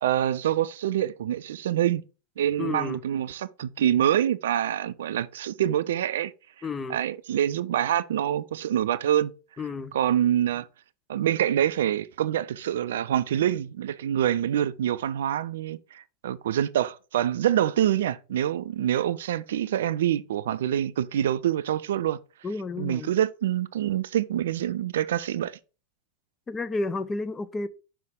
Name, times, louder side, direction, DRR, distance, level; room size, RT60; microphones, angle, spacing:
voice 1, 0.0-2.0 2.4-6.3 6.9-9.3 9.9-10.7 11.1-22.2 22.8-25.6, right 11 dB, 60° right, 0.4 m, -26 dB
voice 2, 2.6-3.0 6.6-7.0 9.6-9.9 22.4-23.1 26.5-27.7, left 3 dB, 15° left, 0.5 m, -31 dB
5.6 x 5.0 x 3.6 m
figure-of-eight pair, 90°, 0 cm